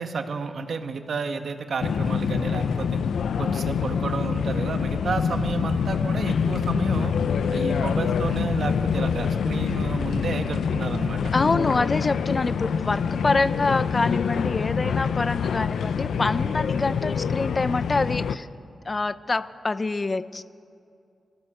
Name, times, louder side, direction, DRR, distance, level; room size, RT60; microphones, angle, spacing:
voice 1, 0.0-3.0 3.4-7.1 7.5-11.2, right 5 dB, 60° right, 7 dB, 1.3 m, -31 dB
sound 1, 1.8-18.4, left 6 dB, 90° left, 0.6 m, -25 dB
voice 2, 11.3-18.5 18.9-20.4, left 3 dB, 25° left, 14 dB, 0.5 m, -26 dB
24.0 x 16.0 x 6.7 m, 2.4 s
wide cardioid pair, 145°, 0 cm